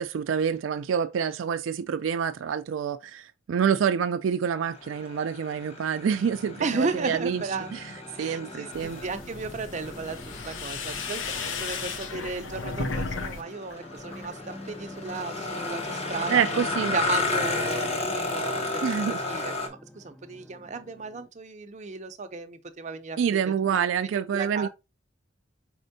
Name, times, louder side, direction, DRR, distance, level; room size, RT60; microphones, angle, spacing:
voice 1, 0.0-7.4 7.7-7.8 8.2-9.0 16.3-16.9 18.8-19.2 23.2-24.7, right 7 dB, 90° right, 0.4 m, -27 dB
sound 1, 4.6-19.7, left 3 dB, 35° left, 0.8 m, -34 dB
sound 2, 6.1-21.3, left 1 dB, 5° left, 0.3 m, -47 dB
voice 2, 6.6-7.7 8.2-16.4 16.9-23.4 23.7-24.7, right 4 dB, 40° right, 0.6 m, -34 dB
sound 3, 8.7-13.4 13.7-14.3, left 4 dB, 80° left, 0.7 m, -34 dB
4.4 x 4.2 x 2.6 m
head